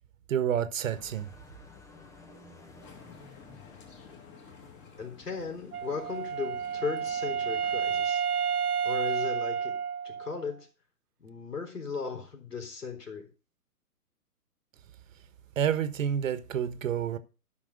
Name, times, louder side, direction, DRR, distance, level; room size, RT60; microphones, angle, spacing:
voice 1, 0.3-1.3 15.5-17.2, right 9 dB, 55° right, 1.4 m, -29 dB
sound 1, 0.8-6.4, left 3 dB, 5° left, 0.7 m, -54 dB
sound 2, 2.8-8.0, left 6 dB, 25° left, 2.3 m, -53 dB
voice 2, 5.0-8.5 8.8-9.8 10.0-10.7 11.2-13.3, left 5 dB, 85° left, 3.9 m, -37 dB
Wind instrument woodwind instrument, 5.7-10.5, right 7 dB, 75° right, 0.7 m, -30 dB
13.0 x 5.9 x 5.3 m
hypercardioid pair, 130°, 46 cm